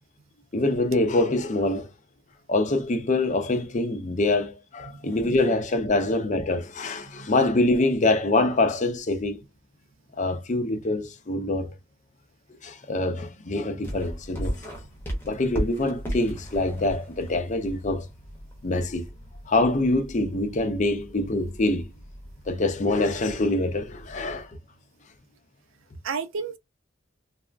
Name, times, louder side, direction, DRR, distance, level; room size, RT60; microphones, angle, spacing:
voice 1, 0.5-1.9 2.5-9.4 10.2-11.7 12.6-14.6 15.2-18.1 18.6-19.1 19.5-21.9 22.5-24.5, left 2 dB, 35° left, 0.5 m, -25 dB
voice 2, 5.0-5.4 7.1-7.3 26.0-26.6, right 5 dB, 80° right, 0.4 m, -32 dB
sound 1, 13.8-24.5, equal, 10° left, 0.8 m, -37 dB
3.3 x 2.0 x 2.4 m
head